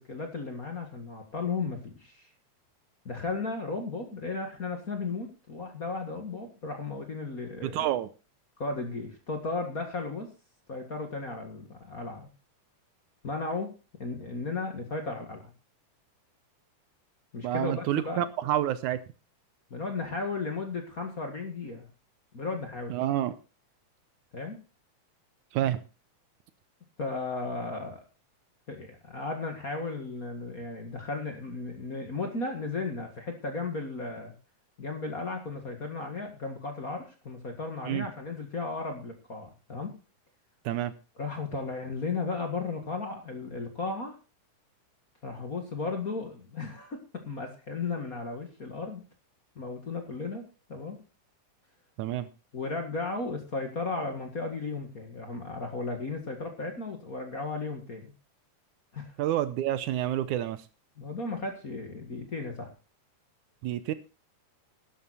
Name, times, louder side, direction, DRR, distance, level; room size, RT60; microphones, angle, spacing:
voice 1, 0.0-2.3 3.1-7.9 8.6-10.3 10.7-12.3 13.2-13.7 14.0-15.4 17.3-18.2 19.7-21.9 22.3-23.0 24.3-24.6 27.0-28.0 28.7-34.3 34.8-39.9 41.2-44.2 45.2-49.0 49.6-50.4 50.7-51.0 52.5-58.1 58.9-59.1 61.0-62.7, left 3 dB, 35° left, 4 dB, 1.8 m, -35 dB
voice 2, 7.6-8.1 17.4-19.0 22.9-23.3 25.5-25.8 37.9-38.1 40.7-40.9 52.0-52.3 59.2-60.6 63.6-63.9, right 12 dB, 75° right, 14 dB, 2.1 m, -28 dB
12.5 x 11.0 x 4.2 m, 0.32 s
omnidirectional pair, 3.7 m